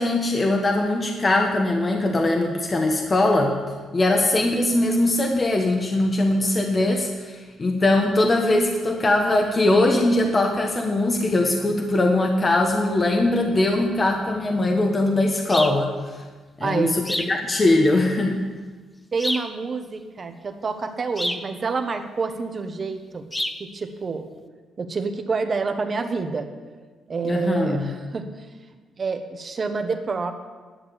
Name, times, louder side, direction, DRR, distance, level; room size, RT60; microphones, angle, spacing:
voice 1, 0.0-3.6 3.9-16.2 16.6-18.4 27.2-27.9, left 2 dB, 30° left, 2 dB, 1.3 m, -21 dB
sound 1, 15.5-15.8 17.0-17.4 19.2-19.5 21.2-21.5 23.3-23.6, left 1 dB, 10° left, 0.8 m, -28 dB
voice 2, 16.6-16.9 19.1-23.3 23.6-24.3 24.8-26.5 27.1-28.5 29.0-30.3, right 4 dB, 40° right, 7 dB, 1.3 m, -28 dB
11.5 x 6.7 x 8.3 m, 1.4 s
cardioid pair, 90°, 0 cm